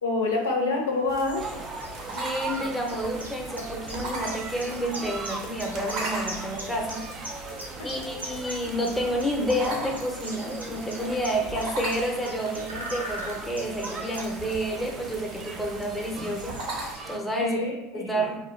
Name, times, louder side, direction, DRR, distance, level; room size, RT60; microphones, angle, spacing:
voice 1, 0.0-1.5 7.8-7.9 17.4-18.2, left 3 dB, 75° left, 0 dB, 0.5 m, -27 dB
sound 1, 0.8-17.4, right 1 dB, 90° right, 0.5 m, -43 dB
sound 2, 1.1-16.9, right 2 dB, 55° right, 0.7 m, -40 dB
sound 3, 1.4-17.2, right 3 dB, 30° right, 0.3 m, -39 dB
voice 2, 2.0-7.1 7.8-17.6 17.9-18.4, equal, 5° left, 0 dB, 0.7 m, -30 dB
2.5 x 2.1 x 3.1 m, 0.98 s
figure-of-eight pair, 75°, 0 cm